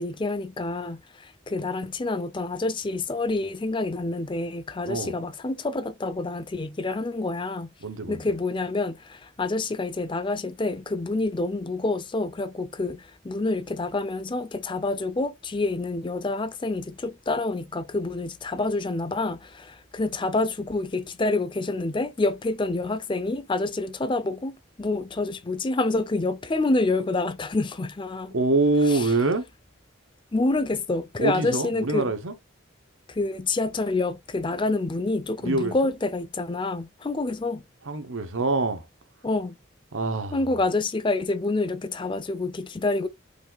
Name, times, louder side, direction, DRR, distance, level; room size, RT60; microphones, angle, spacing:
voice 1, 0.0-7.7 8.1-28.4 28.8-29.1 30.3-32.1 33.1-37.7 39.2-39.6 40.3-43.1, left 2 dB, 25° left, 0.5 m, -27 dB
voice 2, 7.8-8.2 28.3-29.5 31.2-32.3 35.4-35.7 37.9-38.9 39.9-40.4, right 2 dB, 80° right, 1.0 m, -25 dB
5.2 x 2.5 x 3.9 m
head